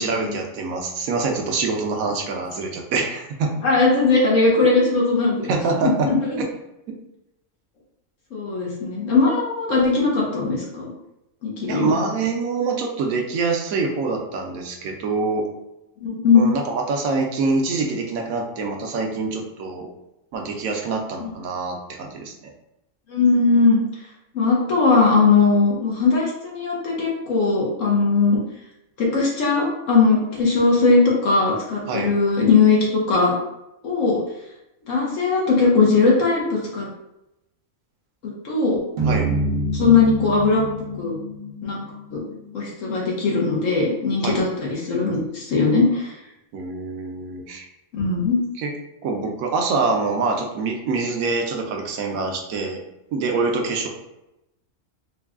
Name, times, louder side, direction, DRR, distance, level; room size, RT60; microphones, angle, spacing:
voice 1, 0.0-3.5 5.5-6.1 11.7-15.5 16.3-19.9 20.3-22.5 31.9-32.1 39.1-39.3 44.2-44.4 46.5-47.7 48.6-48.7 49.0-52.8 53.1-53.9, right 4 dB, 80° right, 2 dB, 1.1 m, -25 dB
voice 2, 3.6-5.5 5.8-6.3 8.3-10.9 11.4-11.9 16.0-16.5 21.2-21.3 23.1-23.8 24.3-28.4 29.0-33.3 33.8-34.2 34.9-36.9 38.4-38.8 39.7-40.6 40.9-41.1 41.6-41.8 42.1-42.2 42.5-46.2 47.9-48.4, left 4 dB, 70° left, -4 dB, 1.2 m, -19 dB
sound 1, 39.0-43.4, right 1 dB, 45° right, 1.0 m, -27 dB
4.0 x 2.3 x 3.5 m, 0.89 s
omnidirectional pair, 1.4 m